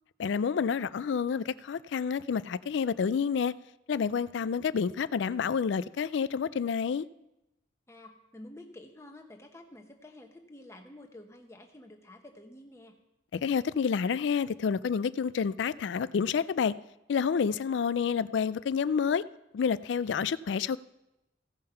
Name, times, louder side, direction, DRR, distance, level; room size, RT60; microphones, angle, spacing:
voice 1, 0.2-3.5 3.9-7.0 13.3-16.7 17.1-19.2 19.5-20.8, left 6 dB, 70° left, 0.3 m, -29 dB
voice 2, 7.9-13.0, left 1 dB, 15° left, 1.0 m, -50 dB
16.0 x 5.6 x 5.6 m
head